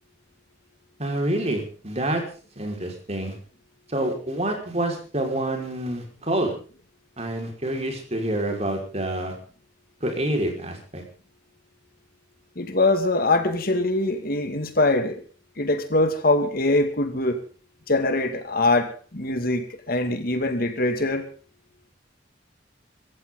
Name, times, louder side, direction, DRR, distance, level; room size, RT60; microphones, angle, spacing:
voice 1, 1.0-2.2 2.6-3.3 3.9-6.5 7.2-9.3 10.0-11.0, right 1 dB, 35° right, 5.2 m, -27 dB
voice 2, 12.6-15.2 15.6-17.4 17.9-21.2, left 2 dB, 55° left, 2.3 m, -23 dB
25.0 x 14.5 x 4.0 m
head